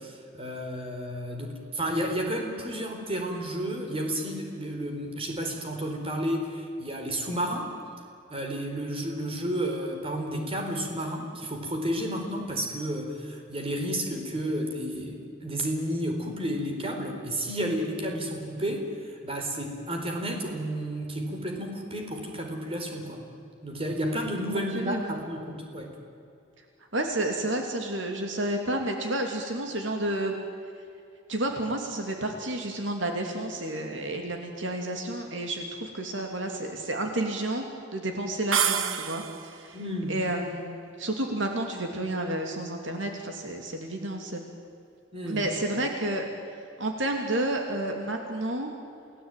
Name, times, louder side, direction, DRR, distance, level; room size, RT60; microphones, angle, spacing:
voice 1, 0.0-7.7 8.3-23.2 23.6-25.9 39.7-40.2 45.1-45.4, equal, 30° right, 3 dB, 4.3 m, -31 dB
voice 2, 24.7-25.2 26.9-30.4 31.3-37.7 37.9-39.8 40.1-44.4 45.3-46.3 46.8-48.7, right 1 dB, 65° right, 3 dB, 2.9 m, -30 dB
sound 1, 38.5-39.6, right 8 dB, 90° right, 1.5 m, -27 dB
29.0 x 18.5 x 9.3 m, 2.5 s
head